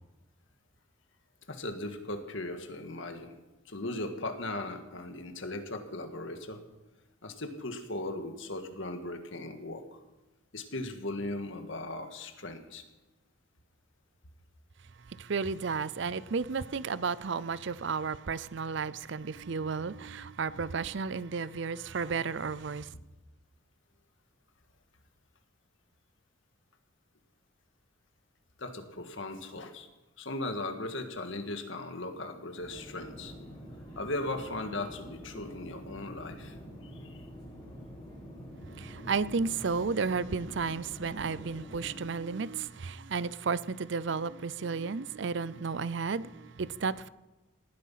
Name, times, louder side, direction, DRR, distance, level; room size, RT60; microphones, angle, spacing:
voice 1, 1.5-3.3 3.7-6.6 7.2-10.0 10.5-12.8 28.6-29.9 30.2-33.3 33.9-36.6 36.9-37.3, left 2 dB, 65° left, 1.8 m, -38 dB
voice 2, 15.1-22.9 38.7-47.1, right 5 dB, 60° right, 0.5 m, -33 dB
sound 1, 32.6-42.0, equal, 20° left, 7.8 m, -47 dB
18.5 x 12.5 x 5.7 m
head